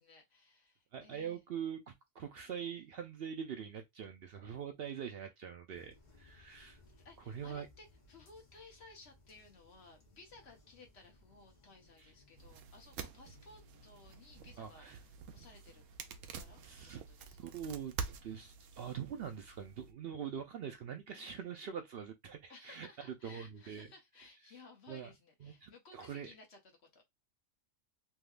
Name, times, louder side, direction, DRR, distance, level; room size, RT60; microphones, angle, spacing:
voice 1, 0.0-1.4 6.9-15.8 16.3-16.6 16.9-17.6 21.1-21.5 22.5-27.0, left 3 dB, 60° left, 1.2 m, -58 dB
voice 2, 0.9-6.8 7.3-7.7 12.0-12.1 14.6-15.0 16.6-17.0 17.4-17.9 18.2-22.9 23.2-23.9 24.5-24.6 24.9-25.1 25.4-26.3, right 8 dB, 60° right, 0.7 m, -44 dB
sound 1, 5.7-16.7, left 2 dB, 35° left, 1.1 m, -65 dB
sound 2, 12.4-19.9, right 6 dB, 85° right, 1.0 m, -48 dB
3.5 x 2.8 x 2.4 m
omnidirectional pair, 1.3 m